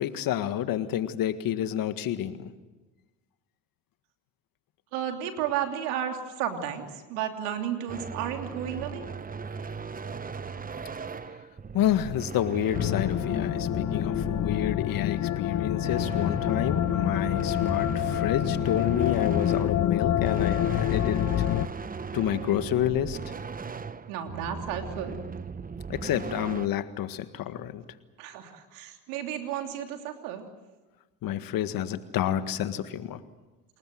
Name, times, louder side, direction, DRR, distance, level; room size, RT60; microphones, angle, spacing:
voice 1, 0.0-2.5 11.7-21.2 22.1-23.2 25.9-27.8 31.2-33.2, left 11 dB, 65° left, 11 dB, 1.8 m, -29 dB
voice 2, 4.9-9.0 24.1-25.2 28.2-30.5, right 9 dB, 80° right, 4 dB, 3.2 m, -33 dB
sound 1, 7.9-15.1 15.5-26.7, right 5 dB, 20° right, 1.1 m, -38 dB
sound 2, 12.7-21.7, left 11 dB, 45° left, 0.9 m, -27 dB
28.0 x 20.5 x 7.8 m, 1.2 s
hypercardioid pair, 65°, 38 cm